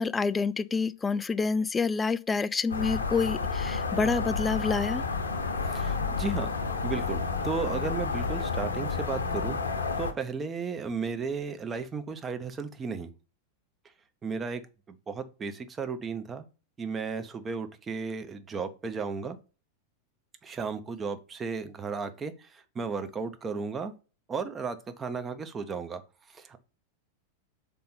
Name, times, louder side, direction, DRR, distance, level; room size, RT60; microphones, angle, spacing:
voice 1, 0.0-5.0, left 4 dB, 15° left, 0.3 m, -28 dB
sound 1, 2.7-10.1, left 4 dB, 70° left, 0.9 m, -30 dB
voice 2, 5.7-6.5 6.8-9.6 10.0-13.1 14.2-14.6 15.1-16.5 16.8-19.4 20.4-22.3 22.7-23.9 24.3-26.0 26.3-26.6, right 5 dB, 20° right, 0.7 m, -34 dB
5.5 x 4.2 x 4.2 m
figure-of-eight pair, 90°, 0 cm